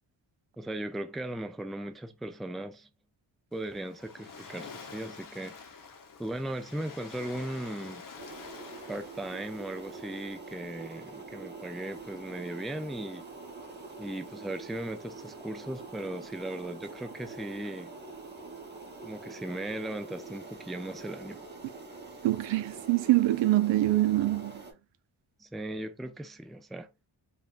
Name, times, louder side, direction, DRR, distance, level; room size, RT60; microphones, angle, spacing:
voice 1, 0.6-2.9 3.5-5.6 6.2-8.0 8.9-13.2 14.0-17.9 19.0-21.4 25.4-26.9, right 1 dB, ahead, 0.3 m, -37 dB
Waves surf, 3.5-10.3, left 5 dB, 45° left, 0.8 m, -48 dB
sound 1, 8.2-24.7, right 3 dB, 25° right, 0.9 m, -45 dB
voice 2, 22.2-24.6, right 16 dB, 80° right, 0.5 m, -25 dB
3.5 x 2.4 x 2.4 m
cardioid pair, 75°, 44 cm